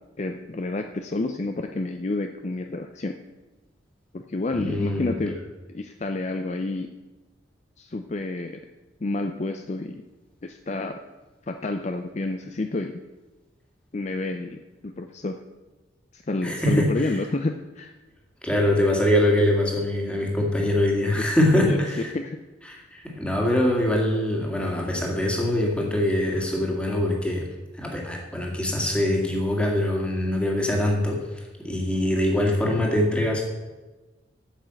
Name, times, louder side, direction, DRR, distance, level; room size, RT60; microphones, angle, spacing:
voice 1, 0.2-3.2 4.1-5.4 5.7-6.9 7.8-8.6 9.0-10.0 10.4-11.0 11.5-13.0 13.9-15.4 16.1-17.9 21.4-21.8 22.1-22.4 22.7-22.9, left 2 dB, 40° left, 6 dB, 0.5 m, -29 dB
voice 2, 4.6-5.1 16.4-17.1 18.4-22.1 22.7-27.5 27.7-33.4, left 1 dB, 5° left, -1 dB, 2.0 m, -23 dB
8.8 x 7.4 x 7.7 m, 1.2 s
head